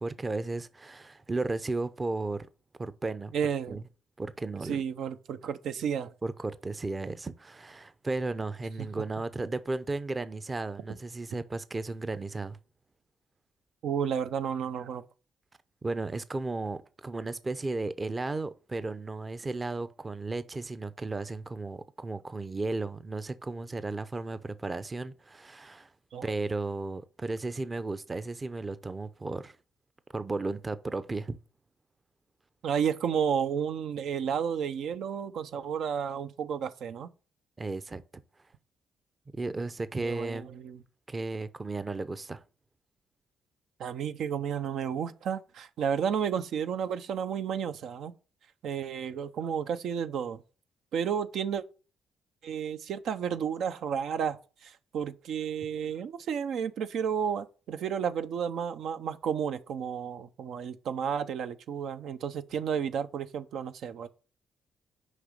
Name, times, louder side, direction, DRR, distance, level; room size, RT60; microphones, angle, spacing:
voice 1, 0.0-2.5 2.8-3.3 3.7-3.8 4.2-4.8 6.2-12.6 15.8-25.9 26.2-29.6 30.1-31.4 37.6-38.0 39.3-40.5 41.1-42.4, right 3 dB, 25° right, 0.6 m, -34 dB
voice 2, 3.3-3.8 4.7-6.1 13.8-15.0 26.1-26.3 32.6-37.1 40.0-40.8 43.8-48.1 48.6-50.4 50.9-51.6 52.4-54.4 54.6-64.1, right 7 dB, 75° right, 0.7 m, -32 dB
6.6 x 5.1 x 6.6 m
cardioid pair, 90°, 0 cm